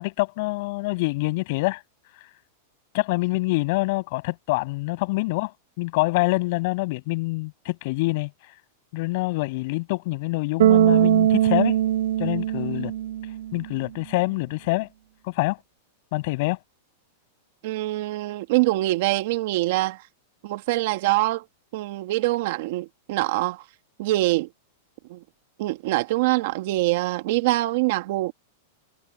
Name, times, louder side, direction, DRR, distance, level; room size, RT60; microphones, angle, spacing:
voice 1, 0.0-1.8 2.9-5.5 5.8-8.3 8.9-11.8 12.2-12.9 13.5-14.9 15.3-15.6 16.1-16.6, left 24 dB, 45° left, 8.0 m, -25 dB
Bass guitar, 10.6-13.7, right 12 dB, 75° right, 3.9 m, -21 dB
voice 2, 17.6-20.0 20.4-21.4 21.7-23.6 24.0-24.5 25.1-25.2 25.6-28.3, right 18 dB, 50° right, 1.7 m, -24 dB
supercardioid pair, 165°, 0 cm